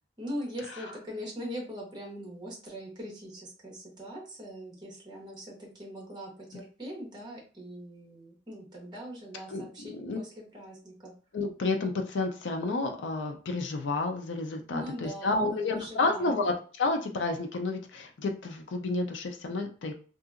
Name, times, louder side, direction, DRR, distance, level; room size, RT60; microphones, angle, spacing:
voice 1, 0.2-11.1 14.7-16.5, equal, 25° right, -2 dB, 1.1 m, -41 dB
voice 2, 9.5-10.2 11.3-19.9, left 3 dB, 80° left, 4 dB, 0.4 m, -30 dB
2.7 x 2.6 x 2.4 m, 0.39 s
head